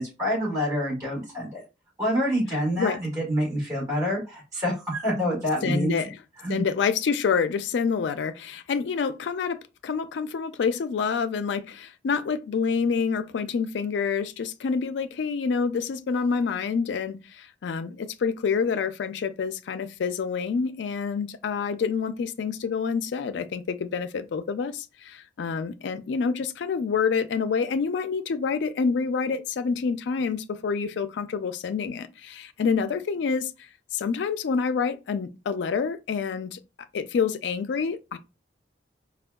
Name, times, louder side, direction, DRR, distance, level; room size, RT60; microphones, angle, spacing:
voice 1, 0.0-1.6 2.0-5.9 6.4-6.7, equal, 20° right, 1.8 m, -27 dB
voice 2, 5.6-6.2 6.5-36.6 36.9-38.2, left 5 dB, 80° left, 0.4 m, -27 dB
4.3 x 2.2 x 2.2 m
head